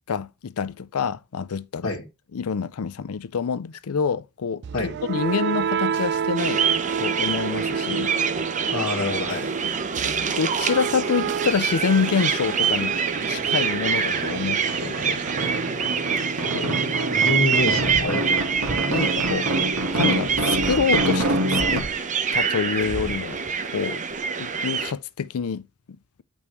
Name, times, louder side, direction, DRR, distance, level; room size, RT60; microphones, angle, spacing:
voice 1, 0.1-2.0 2.3-4.6 5.0-6.6 7.0-8.1 9.6-9.8 10.0-13.0 13.3-15.2 16.5-16.8 18.9-19.5 19.9-21.9 22.3-24.0 24.3-26.2, left 6 dB, 90° left, 0.5 m, -27 dB
sound 1, 4.6-16.5, right 7 dB, 50° right, 0.3 m, -30 dB
sound 2, 6.4-24.9, right 6 dB, 35° right, 0.8 m, -26 dB
voice 2, 8.7-9.5 16.6-18.3, left 3 dB, 75° left, 1.7 m, -27 dB
sound 3, 10.6-10.7 11.0-12.2 12.5-21.8, right 1 dB, 75° right, 1.7 m, -28 dB
8.3 x 5.3 x 3.1 m
head